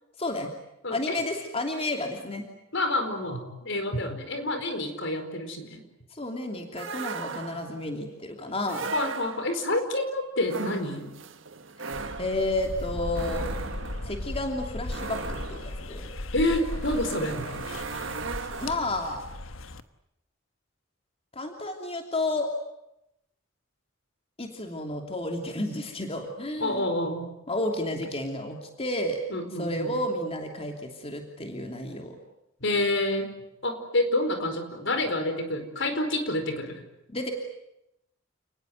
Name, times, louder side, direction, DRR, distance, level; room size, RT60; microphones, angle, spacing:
voice 1, 0.2-0.5 0.9-2.5 6.1-8.9 11.9-13.5 14.0-16.1 18.6-19.2 21.3-22.5 24.4-26.9 27.5-29.2 29.6-32.2 37.1-37.3, left 1 dB, 30° left, 3 dB, 3.0 m, -31 dB
voice 2, 0.8-1.2 2.7-5.8 8.9-11.1 16.3-17.5 26.6-27.3 29.3-29.9 32.6-33.3 33.6-36.8, left 1 dB, 65° left, 8 dB, 4.6 m, -28 dB
sound 1, 6.8-7.8 8.6-9.7 10.4-19.2, right 4 dB, 65° right, 1.6 m, -38 dB
sound 2, 11.9-19.8, left 1 dB, 80° left, 1.3 m, -37 dB
30.0 x 20.0 x 9.4 m, 0.86 s
head